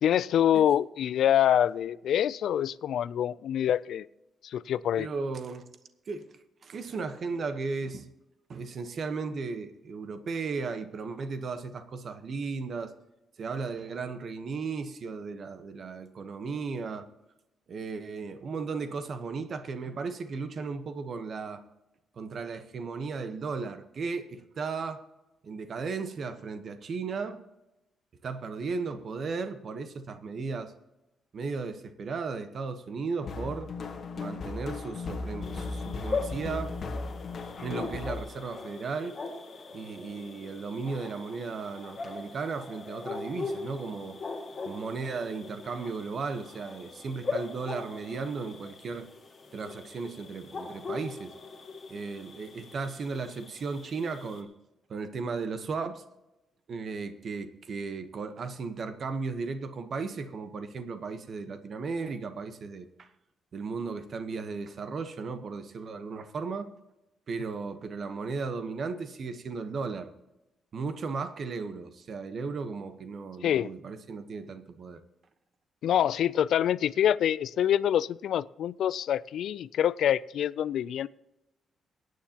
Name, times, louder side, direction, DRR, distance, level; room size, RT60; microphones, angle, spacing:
voice 1, 0.0-4.1 4.4-5.1 73.4-73.7 75.8-81.1, left 10 dB, 70° left, 19 dB, 0.3 m, -26 dB
voice 2, 5.0-5.6 6.1-6.3 6.6-8.1 8.5-12.9 13.4-17.1 17.7-21.6 22.2-25.0 25.4-27.4 28.2-30.7 31.3-33.7 34.2-36.7 37.6-39.1 39.7-44.2 44.6-49.1 49.5-51.3 51.9-54.5 54.9-56.0 56.7-63.1 63.5-66.7 67.3-70.1 70.7-75.0, right 4 dB, 45° right, 9 dB, 1.0 m, -35 dB
sound 1, 33.2-38.2, left 3 dB, 45° left, 1.3 m, -36 dB
sound 2, 35.4-54.4, left 4 dB, 30° left, 1.9 m, -40 dB
23.0 x 9.4 x 2.9 m, 0.96 s
cardioid pair, 150°, 0 cm